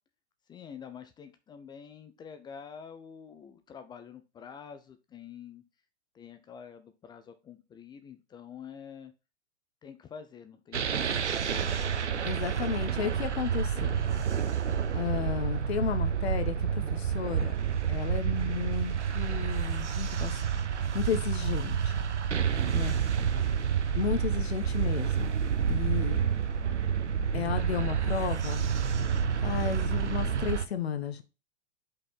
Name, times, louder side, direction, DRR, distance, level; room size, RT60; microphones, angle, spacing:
voice 1, 0.5-5.6 6.1-9.1 9.8-11.0 22.5-22.8, left 7 dB, 15° left, 8 dB, 0.5 m, -47 dB
sound 1, 10.7-30.6, right 7 dB, 85° right, 0.8 m, -29 dB
voice 2, 12.2-14.0 14.9-17.5 17.9-20.4 20.9-21.9 22.7-22.9 23.9-25.3 25.7-26.2 27.3-28.7 29.4-31.2, left 8 dB, 65° left, 10 dB, 1.2 m, -33 dB
5.4 x 4.2 x 4.2 m, 0.29 s
figure-of-eight pair, 110°, 34 cm